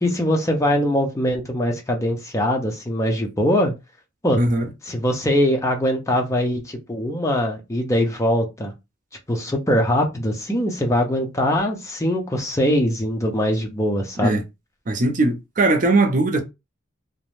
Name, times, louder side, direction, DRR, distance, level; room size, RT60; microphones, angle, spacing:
voice 1, 0.0-3.7 4.2-4.4 4.8-8.7 9.3-14.4, equal, 15° left, 0.5 m, -22 dB
voice 2, 4.4-4.7 14.2-14.4 14.9-16.4, right 2 dB, 40° right, 0.5 m, -19 dB
2.5 x 2.0 x 3.0 m
head